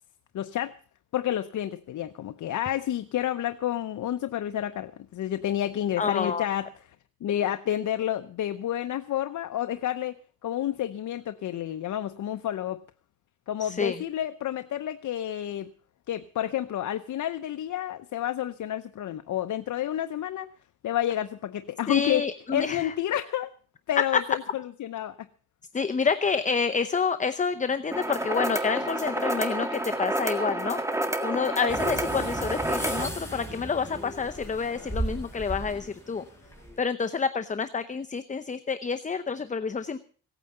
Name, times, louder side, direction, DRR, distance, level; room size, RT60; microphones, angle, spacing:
voice 1, 0.3-0.8 1.1-6.7 7.2-12.8 13.5-15.7 16.1-20.5 20.8-22.3 22.5-23.5 23.9-25.3, left 11 dB, 65° left, 11 dB, 0.8 m, -30 dB
voice 2, 6.0-6.5 13.6-14.0 21.9-22.9 24.0-24.2 25.7-30.8 31.2-36.2 36.8-40.0, left 5 dB, 25° left, 10 dB, 0.8 m, -28 dB
sound 1, 27.9-33.1, right 1 dB, 10° right, 1.7 m, -29 dB
sound 2, 31.7-36.8, right 1 dB, 10° left, 6.1 m, -36 dB
17.0 x 9.2 x 6.6 m, 0.42 s
cardioid pair, 95°, 32 cm